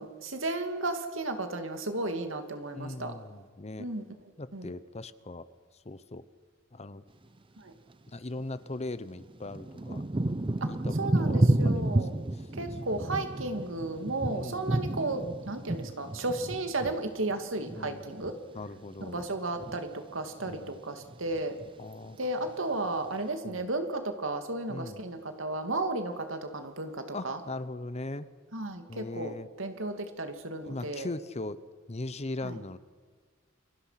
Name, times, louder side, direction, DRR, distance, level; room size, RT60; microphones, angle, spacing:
voice 1, 0.0-3.1 3.8-4.0 4.5-4.7 7.6-7.7 10.6-10.7 11.0-12.1 12.6-18.4 19.0-21.5 22.2-27.4 28.5-29.3 29.6-31.1 32.4-32.6, right 2 dB, 75° right, 6 dB, 2.5 m, -34 dB
voice 2, 2.7-3.9 4.4-5.5 5.8-6.2 6.7-7.0 8.1-10.0 10.7-12.0 12.3-12.4 14.3-14.8 17.7-18.1 18.5-19.2 20.5-20.8 21.8-22.2 23.4-23.7 24.7-25.0 27.1-28.3 28.9-29.5 30.6-31.6 31.9-32.8, left 2 dB, 35° left, 14 dB, 0.9 m, -39 dB
Thunder / Rain, 8.4-8.5 9.2-18.7 19.0-19.8 20.4-20.8 21.0-21.8 22.4-22.5, right 1 dB, 25° right, 0.7 m, -31 dB
29.0 x 23.5 x 5.9 m, 1.6 s
head